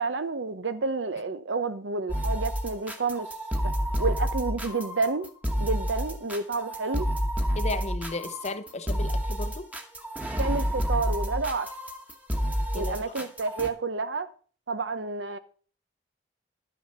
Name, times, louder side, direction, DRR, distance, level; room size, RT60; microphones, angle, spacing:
voice 1, 0.0-3.3 3.6-3.7 4.0-5.3 5.6-7.1 10.4-11.7 12.7-14.3 14.7-15.4, right 4 dB, 90° right, 0.9 m, -30 dB
sound 1, 2.1-13.7, equal, 10° right, 1.2 m, -29 dB
voice 2, 7.5-9.7 12.7-13.1, left 2 dB, 40° left, 0.8 m, -35 dB
11.5 x 6.3 x 5.6 m
head